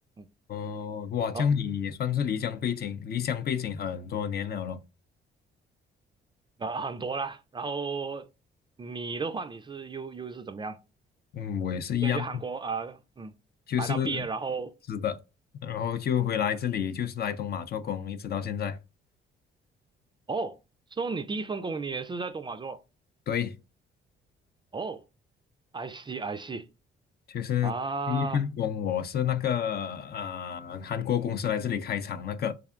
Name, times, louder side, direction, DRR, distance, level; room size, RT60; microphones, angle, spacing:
voice 1, 0.5-4.8 11.3-12.2 13.7-14.2 14.9-15.2 15.6-18.8 23.3-23.6 27.3-27.7 28.1-32.5, left 8 dB, 50° left, 0.5 m, -29 dB
voice 2, 6.6-8.3 8.8-10.8 12.0-13.3 13.8-14.8 20.3-20.6 20.9-22.8 24.7-25.0 25.7-26.7 27.6-28.4, right 4 dB, 25° right, 0.3 m, -34 dB
3.6 x 3.3 x 2.4 m
cardioid pair, 90°, 20 cm